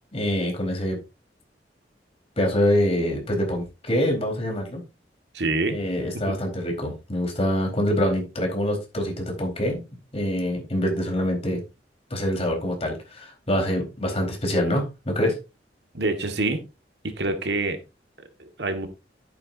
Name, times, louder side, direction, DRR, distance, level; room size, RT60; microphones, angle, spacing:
voice 1, 0.1-1.0 2.4-4.8 5.7-9.8 10.1-11.6 12.1-15.4, equal, 35° left, 1 dB, 4.4 m, -25 dB
voice 2, 5.3-5.8 6.3-6.4 15.9-16.6 17.0-17.8 18.4-18.9, right 2 dB, 70° right, 7 dB, 1.7 m, -26 dB
11.0 x 9.3 x 2.7 m, 0.27 s
head